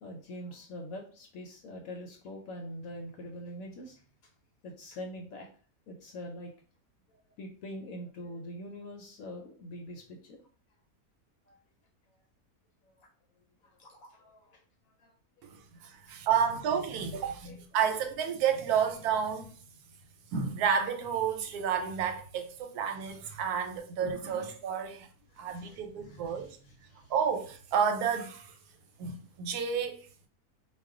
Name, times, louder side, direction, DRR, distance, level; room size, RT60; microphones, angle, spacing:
voice 1, 0.0-4.0 4.6-5.5 5.9-6.5 7.4-10.4 11.5-11.6 13.0-13.1 13.8-14.6 15.0-15.1 15.4-15.5 17.5-17.6 25.4-26.6 26.9-27.1, equal, 75° left, 1.0 m, -44 dB
voice 2, 15.4-19.5 20.3-25.1 25.4-26.6 27.1-28.5 29.0-30.3, right 7 dB, 90° right, 1.1 m, -31 dB
2.3 x 2.3 x 3.6 m
omnidirectional pair, 1.6 m